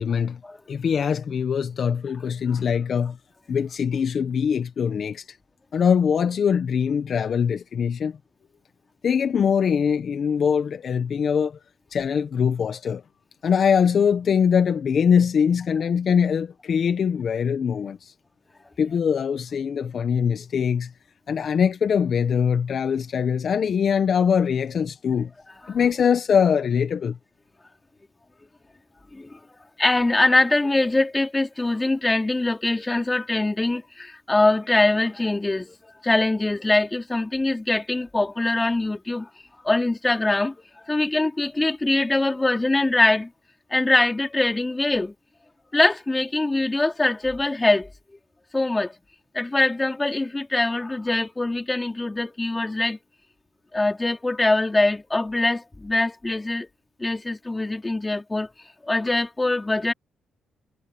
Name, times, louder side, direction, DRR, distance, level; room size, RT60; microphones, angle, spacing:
voice 1, 0.0-0.4 0.7-3.2 3.5-5.2 5.7-8.2 9.0-11.6 11.9-13.0 13.4-18.1 18.8-20.9 21.3-25.3 25.7-27.2, left 7 dB, 55° left, 1.1 m, -22 dB
voice 2, 29.8-35.8 36.0-39.3 39.6-40.5 40.9-43.3 43.7-45.1 45.7-47.9 48.5-48.9 49.3-53.0 53.7-56.7 57.0-58.5 58.9-59.9, left 2 dB, 15° left, 3.6 m, -23 dB
cardioid pair, 90°, 0 cm